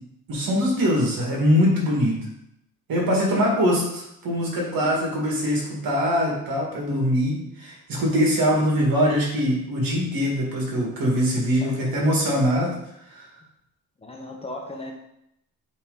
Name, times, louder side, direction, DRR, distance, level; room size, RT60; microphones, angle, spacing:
voice 1, 0.3-2.2 2.9-12.7 13.1-13.3, equal, 85° right, -2 dB, 2.2 m, -22 dB
voice 2, 3.2-3.7 4.6-4.9 11.6-11.7 14.0-14.9, left 1 dB, 15° left, 1 dB, 0.7 m, -38 dB
8.4 x 3.4 x 4.0 m, 0.80 s
wide cardioid pair, 170°, 34 cm